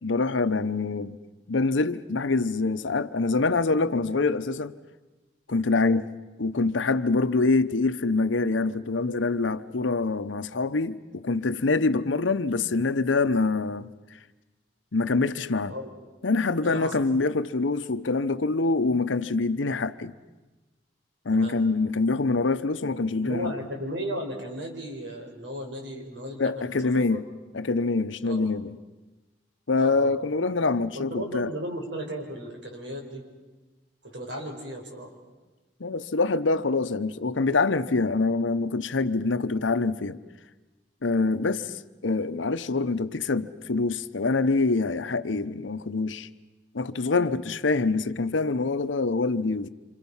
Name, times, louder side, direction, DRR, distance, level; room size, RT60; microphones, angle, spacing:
voice 1, 0.0-1.2 1.5-4.7 5.5-6.1 6.4-13.9 14.9-15.7 16.2-20.1 21.2-23.5 26.4-27.2 27.5-28.8 29.7-31.5 35.8-40.2 41.0-41.7 42.0-46.3 46.7-49.7, left 3 dB, 90° left, 0.8 m, -25 dB
voice 2, 16.6-17.0 21.3-21.6 23.2-27.2 28.2-28.5 29.7-30.1 30.9-33.2 34.0-35.1, equal, 75° right, 5.0 m, -35 dB
27.5 x 27.0 x 5.7 m
head